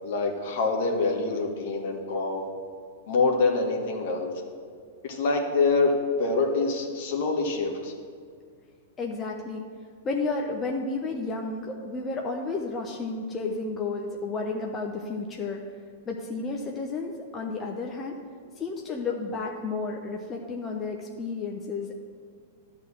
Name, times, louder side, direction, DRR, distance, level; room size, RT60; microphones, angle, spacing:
voice 1, 0.0-2.5 3.1-4.3 5.0-7.9, left 3 dB, 60° left, 1 dB, 1.7 m, -25 dB
voice 2, 9.0-9.6 10.0-15.6 16.1-18.2 18.6-22.0, left 3 dB, 25° left, 0 dB, 0.9 m, -32 dB
11.0 x 3.9 x 7.4 m, 2.1 s
hypercardioid pair, 115°, 0 cm